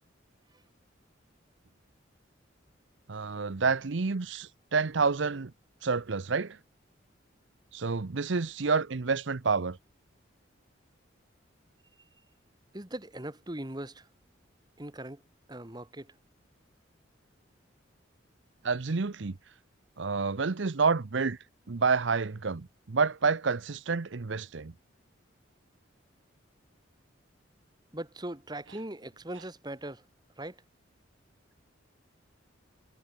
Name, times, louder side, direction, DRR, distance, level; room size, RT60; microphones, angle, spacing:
voice 1, 3.1-5.5 5.8-6.6 7.7-9.8 18.6-19.4 20.0-21.4 21.7-24.7, right 4 dB, 70° right, 0.7 m, -29 dB
voice 2, 12.7-14.0 14.8-15.2 15.5-16.1 27.9-30.0 30.4-30.5, right 1 dB, 20° right, 1.5 m, -40 dB
head